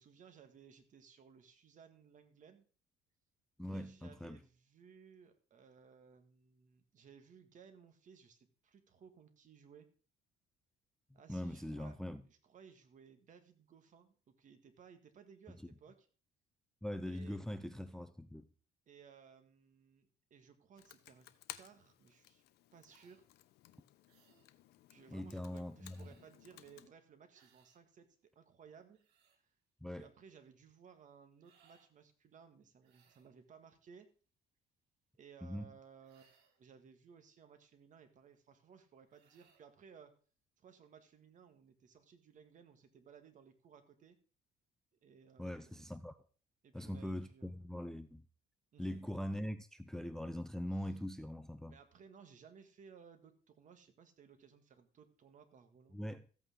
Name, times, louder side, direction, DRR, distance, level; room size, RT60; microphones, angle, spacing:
voice 1, 0.0-2.7 3.7-9.9 11.1-12.0 12.2-16.1 17.1-17.4 18.9-21.3 21.5-22.4 22.7-23.3 24.9-28.1 28.4-29.0 29.3-29.5 29.9-34.1 35.2-36.3 36.6-40.2 40.6-44.2 45.0-45.7 46.6-47.7 48.7-49.0 50.7-50.9 51.7-56.0, right 6 dB, 50° right, 1.9 m, -60 dB
voice 2, 3.6-4.4 11.3-12.2 16.8-18.5 25.1-26.1 29.8-30.1 35.4-35.7 45.4-46.2 46.7-48.2 48.8-51.8 55.9-56.2, left 1 dB, 5° left, 0.6 m, -42 dB
Computer keyboard, 20.8-26.9, left 14 dB, 75° left, 0.8 m, -57 dB
sound 1, 22.8-23.2 24.1-24.5 25.8-26.4 27.3-27.8 28.7-29.4 31.4-31.9 32.8-33.4 36.0-36.6 39.1-39.7, right 6 dB, 85° right, 1.9 m, -71 dB
14.0 x 8.6 x 3.8 m
cardioid pair, 110°, 17 cm